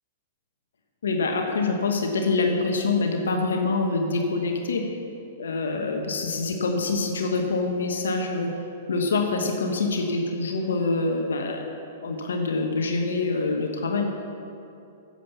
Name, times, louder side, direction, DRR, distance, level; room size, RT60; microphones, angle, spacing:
voice 1, 1.0-4.8 5.4-8.5 8.9-11.7 12.0-14.1, left 3 dB, 80° left, 3 dB, 1.2 m, -25 dB
9.9 x 7.6 x 6.9 m, 2.7 s
hypercardioid pair, 120°, 0 cm